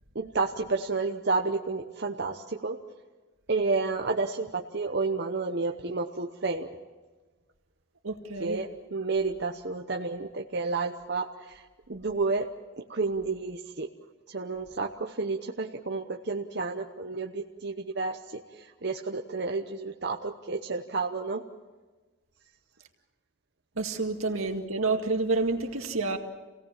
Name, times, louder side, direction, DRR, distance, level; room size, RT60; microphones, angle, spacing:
voice 1, 0.1-2.8 3.5-6.7 8.4-11.6 11.9-12.5 12.9-13.9 14.3-21.5, right 3 dB, 50° right, 2 dB, 0.9 m, -31 dB
voice 2, 8.0-8.6 23.8-26.2, right 3 dB, 85° right, 4 dB, 2.1 m, -29 dB
27.5 x 18.0 x 7.4 m, 1.3 s
head